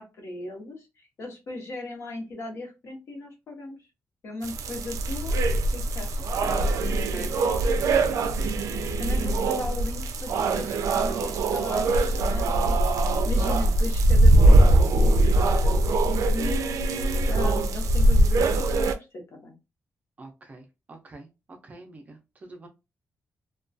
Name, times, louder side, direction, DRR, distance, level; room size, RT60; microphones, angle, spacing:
voice 1, 0.0-3.8 4.2-5.4 5.7-6.2 9.0-19.5, left 2 dB, 55° left, 1 dB, 0.9 m, -38 dB
sound 1, 4.4-18.9, right 2 dB, 90° right, 0.3 m, -22 dB
voice 2, 7.1-8.5 20.2-22.7, right 2 dB, 30° right, 4 dB, 0.4 m, -45 dB
2.3 x 2.2 x 2.5 m, 0.26 s
wide cardioid pair, 180°, 5 cm